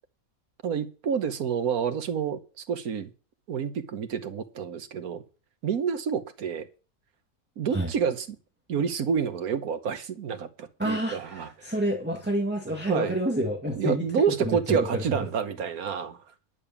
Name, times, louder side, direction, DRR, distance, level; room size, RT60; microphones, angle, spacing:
voice 1, 0.6-3.1 3.5-5.2 5.6-6.7 7.6-8.4 8.7-11.7 12.9-13.2 13.8-16.3, right 7 dB, 85° right, 1.6 m, -29 dB
voice 2, 10.8-14.0 14.4-15.3, right 1 dB, 5° right, 1.8 m, -28 dB
10.5 x 6.9 x 7.2 m
omnidirectional pair, 1.5 m